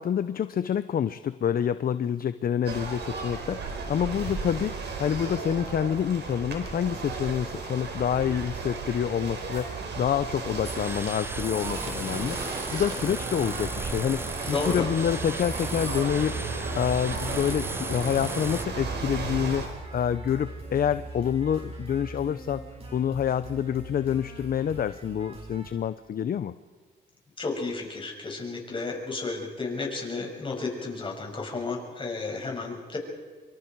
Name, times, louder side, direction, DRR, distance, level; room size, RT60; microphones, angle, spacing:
voice 1, 0.0-22.6 22.9-26.5, left 8 dB, 50° left, 13 dB, 0.7 m, -27 dB
sound 1, 2.7-19.7, right 4 dB, 60° right, 4.7 m, -34 dB
sound 2, 10.6-18.7, right 2 dB, 10° right, 0.6 m, -37 dB
sound 3, 13.1-25.7, right 2 dB, 30° right, 6.5 m, -42 dB
voice 2, 14.5-14.9 27.4-33.0, left 3 dB, 25° left, 0 dB, 6.5 m, -32 dB
26.0 x 25.0 x 4.7 m, 1.5 s
cardioid pair, 90°, 20 cm